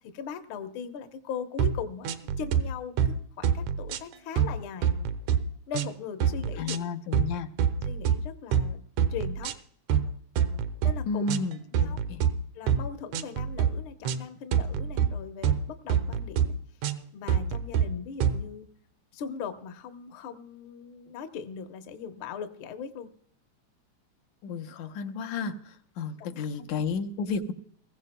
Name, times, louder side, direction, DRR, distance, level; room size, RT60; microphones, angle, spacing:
voice 1, 0.0-4.9 5.7-6.9 7.8-8.8 9.1-9.6 10.8-11.2 11.8-12.0 12.5-16.6 17.1-18.7 19.1-23.1 26.2-26.5 26.7-26.8, left 7 dB, 60° left, 6 dB, 1.4 m, -39 dB
sound 1, 1.6-1.8 2.1-2.6 3.0-3.2 3.4-4.5 4.8-5.4 5.7-5.9 6.2-6.8 7.1-7.3 7.6-8.2 8.5-8.7 9.0-9.5 9.9-10.1 10.4-10.9 11.3-12.3 12.7-12.9 13.1-13.7 14.1-14.2 14.5-15.1 15.4-15.6 15.9-16.5 16.8-17.0 17.3-17.9 18.2-18.4, right 8 dB, 85° right, 2.1 m, -25 dB
voice 2, 6.6-7.5 11.1-12.2 24.4-27.5, left 4 dB, 80° left, 4 dB, 2.3 m, -32 dB
21.0 x 15.5 x 2.2 m, 0.64 s
omnidirectional pair, 3.3 m